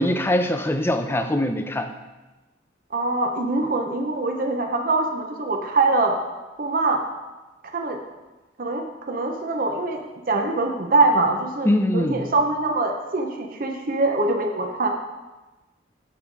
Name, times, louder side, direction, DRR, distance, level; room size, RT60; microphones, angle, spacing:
voice 1, 0.0-1.9 11.6-12.2, left 1 dB, 15° left, 7 dB, 0.5 m, -22 dB
voice 2, 2.9-6.2 6.6-7.0 7.7-8.0 8.6-10.0 10.3-11.7 11.9-14.9, right 3 dB, 50° right, 2 dB, 0.8 m, -23 dB
11.0 x 3.8 x 4.7 m, 1.1 s
head